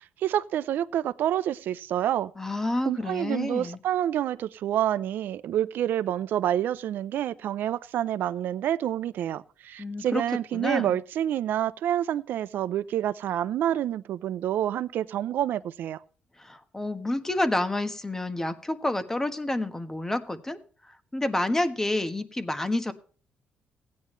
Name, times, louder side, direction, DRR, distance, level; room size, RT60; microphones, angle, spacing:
voice 1, 0.0-2.3 2.9-16.0, right 11 dB, 75° right, 0.6 m, -28 dB
voice 2, 2.4-3.8 9.8-10.2 10.5-10.9 16.4-20.6 21.1-22.9, left 1 dB, 15° left, 1.3 m, -29 dB
16.5 x 9.5 x 3.2 m
cardioid pair, 95°, 3 cm